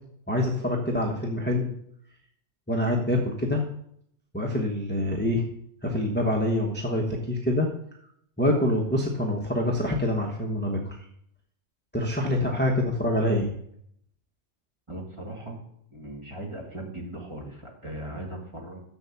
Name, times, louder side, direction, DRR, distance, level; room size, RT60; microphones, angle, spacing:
voice 1, 0.3-1.7 2.7-3.6 4.3-5.4 5.8-7.7 8.4-11.0 11.9-13.5, left 1 dB, 10° left, -1 dB, 1.0 m, -25 dB
voice 2, 14.9-15.6 15.9-18.8, right 1 dB, 20° right, -1 dB, 2.1 m, -38 dB
7.2 x 7.0 x 6.9 m, 0.71 s
omnidirectional pair, 1.4 m